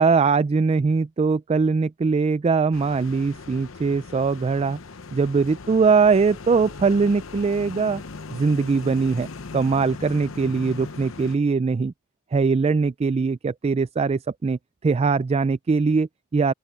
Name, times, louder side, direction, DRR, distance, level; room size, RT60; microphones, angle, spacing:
voice 1, 0.0-4.8 5.1-8.0 8.3-9.3 9.5-11.9 12.3-16.5, right 4 dB, 30° right, 0.3 m, -21 dB
sound 1, 2.7-11.4, left 4 dB, 75° left, 0.9 m, -39 dB
open air
head